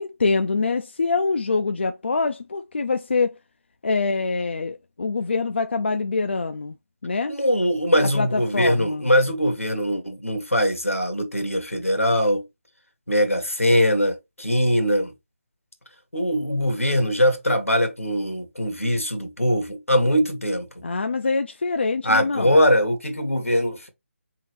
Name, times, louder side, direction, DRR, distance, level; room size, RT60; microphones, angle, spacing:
voice 1, 0.0-3.4 3.8-6.7 7.0-7.3 8.0-9.1 20.8-22.6, left 4 dB, 55° left, 0.4 m, -25 dB
voice 2, 7.3-12.5 13.1-15.1 16.1-20.7 22.0-23.9, equal, 85° left, 1.5 m, -21 dB
4.0 x 3.7 x 3.1 m
figure-of-eight pair, 155°, 7 cm